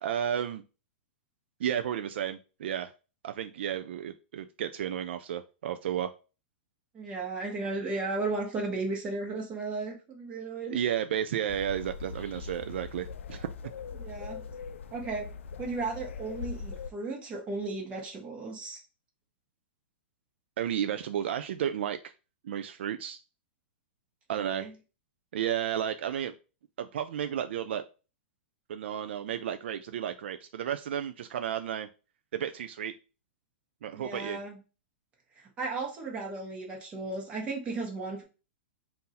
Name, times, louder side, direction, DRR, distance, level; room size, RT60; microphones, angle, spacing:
voice 1, 0.0-0.6 1.6-2.9 3.2-6.1 10.7-13.5 20.6-22.0 22.4-23.2 24.3-24.7 25.3-26.3 26.8-27.8 28.7-31.9 32.3-32.9 33.8-34.4, right 9 dB, 65° right, 9 dB, 0.4 m, -32 dB
voice 2, 6.9-10.8 13.9-14.4 14.9-15.3 15.6-18.8 24.3-24.7 33.9-34.6 35.3-38.2, right 3 dB, 20° right, 0 dB, 1.2 m, -35 dB
sound 1, 11.5-16.9, left 5 dB, 85° left, 0.4 m, -41 dB
3.8 x 2.6 x 4.2 m, 0.33 s
supercardioid pair, 165°, 7 cm